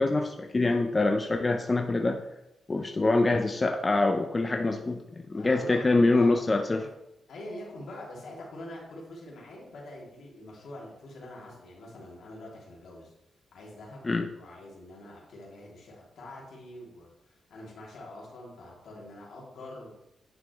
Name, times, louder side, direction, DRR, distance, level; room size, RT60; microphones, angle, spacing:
voice 1, 0.0-2.2 2.7-5.0 5.3-6.9 14.0-14.3, left 2 dB, 30° left, 4 dB, 0.7 m, -25 dB
voice 2, 5.3-6.9 7.3-13.1 13.5-14.0 14.3-19.9, left 1 dB, 80° left, -3 dB, 2.8 m, -45 dB
10.5 x 6.1 x 3.1 m, 0.89 s
cardioid pair, 70°, 0 cm